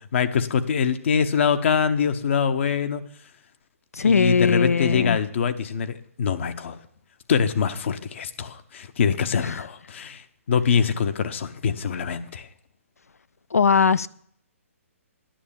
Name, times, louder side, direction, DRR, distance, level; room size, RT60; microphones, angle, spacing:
voice 1, 0.1-3.0 4.0-6.8 7.3-12.5, left 6 dB, 55° left, 9 dB, 0.8 m, -24 dB
voice 2, 3.9-5.2 9.4-9.6 13.5-14.1, left 5 dB, 85° left, 17 dB, 0.4 m, -20 dB
10.0 x 6.2 x 7.2 m, 0.65 s
figure-of-eight pair, 130°, 8 cm